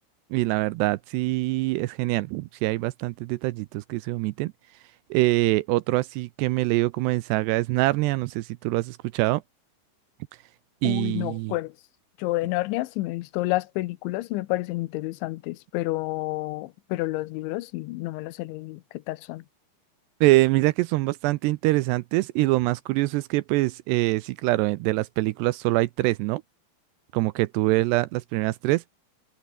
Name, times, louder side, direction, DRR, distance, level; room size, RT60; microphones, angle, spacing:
voice 1, 0.3-4.5 5.1-9.4 10.8-11.5 20.2-26.4 27.1-28.8, right 20 dB, 80° right, 2.5 m, -24 dB
voice 2, 10.8-11.8 12.2-19.4, left 19 dB, 85° left, 3.2 m, -30 dB
omnidirectional pair, 5.2 m